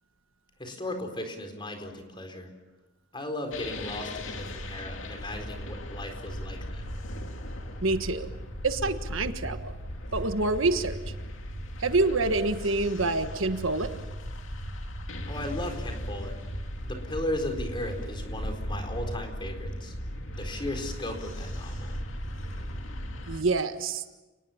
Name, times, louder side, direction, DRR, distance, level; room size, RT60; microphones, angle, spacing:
voice 1, 0.6-2.5 3.1-6.8 15.3-16.3 16.8-19.9 20.4-22.0, left 1 dB, 25° left, 4 dB, 4.3 m, -36 dB
sound 1, 3.5-23.4, equal, 70° left, 2.5 m, -37 dB
voice 2, 7.8-8.3 8.6-9.7 10.1-10.9 11.8-13.9 23.3-24.0, right 3 dB, 70° right, 8 dB, 1.5 m, -26 dB
30.0 x 20.0 x 7.2 m, 1.1 s
head